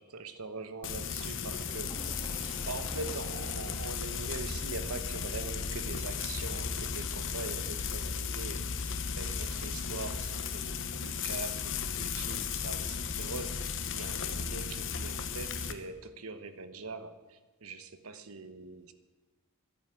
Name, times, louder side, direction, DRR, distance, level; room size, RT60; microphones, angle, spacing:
voice 1, 0.0-18.9, right 3 dB, 75° right, 11 dB, 1.1 m, -43 dB
Frying (food), 0.8-15.7, left 6 dB, 55° left, 1.0 m, -35 dB
sound 1, 1.4-8.2 9.5-9.7 10.1-10.2, left 1 dB, 20° left, 2.4 m, -51 dB
11.0 x 9.6 x 8.9 m, 1.2 s
head